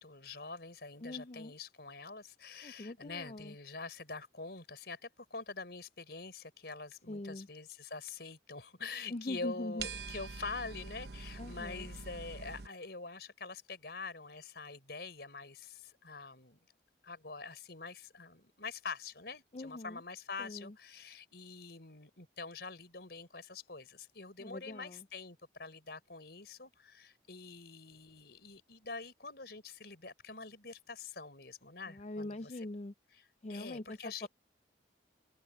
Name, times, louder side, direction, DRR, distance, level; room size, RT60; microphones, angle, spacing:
voice 1, 0.0-16.6 17.0-32.5 33.5-34.3, left 4 dB, 60° left, 4.8 m, -45 dB
voice 2, 1.0-1.5 2.6-3.5 7.1-7.5 9.1-9.9 11.4-11.9 19.5-20.0 20.4-20.7 24.4-25.0 31.9-32.9 33.4-34.3, left 2 dB, 35° left, 0.5 m, -42 dB
sound 1, 9.8-12.7, right 4 dB, 60° right, 0.9 m, -44 dB
open air
head